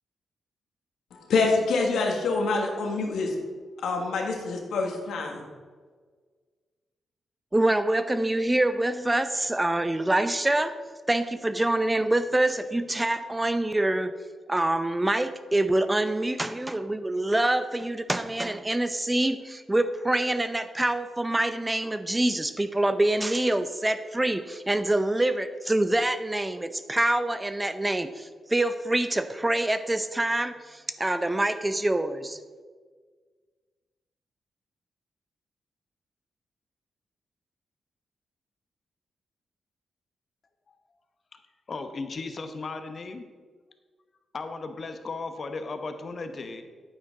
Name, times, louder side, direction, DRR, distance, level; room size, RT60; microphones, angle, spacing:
voice 1, 1.1-3.3 3.8-5.4, left 3 dB, 85° left, 2 dB, 1.6 m, -26 dB
voice 2, 7.5-10.8 11.1-14.1 14.5-32.4, right 1 dB, 15° right, 11 dB, 0.6 m, -25 dB
voice 3, 41.7-43.2 44.3-46.6, left 3 dB, 50° left, 8 dB, 1.0 m, -35 dB
9.0 x 8.9 x 3.8 m, 1.5 s
cardioid pair, 65°, 0 cm